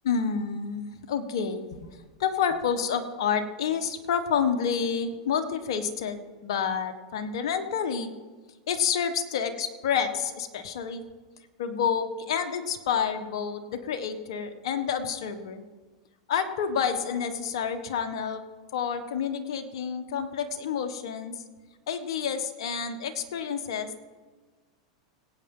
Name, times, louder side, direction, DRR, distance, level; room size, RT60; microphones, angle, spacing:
voice 1, 0.0-1.9 2.2-8.1 8.7-11.0 11.6-15.6 16.3-18.4 18.7-21.3 21.9-24.0, left 7 dB, 75° left, 6 dB, 1.3 m, -29 dB
21.5 x 8.9 x 3.8 m, 1.3 s
hypercardioid pair, 115°, 3 cm